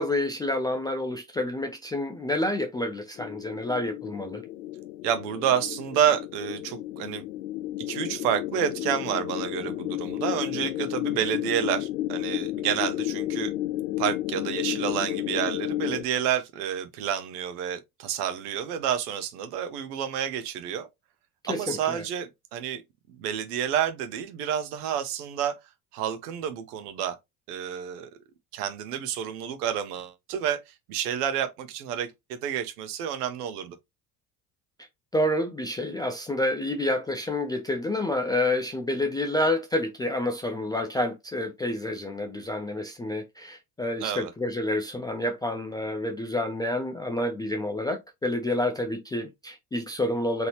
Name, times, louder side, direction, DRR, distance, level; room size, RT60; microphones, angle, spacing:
voice 1, 0.0-4.4 21.4-22.0 35.1-50.5, left 1 dB, 10° left, 0.3 m, -28 dB
sound 1, 3.2-16.0, left 15 dB, 75° left, 0.6 m, -32 dB
voice 2, 5.0-7.2 7.9-13.5 14.0-20.9 21.5-22.8 23.2-25.5 25.9-27.2 27.5-28.1 28.5-32.1 32.4-33.8 44.0-44.3, right 9 dB, 65° right, 0.9 m, -29 dB
3.9 x 3.0 x 2.9 m
figure-of-eight pair, 60°, 50 cm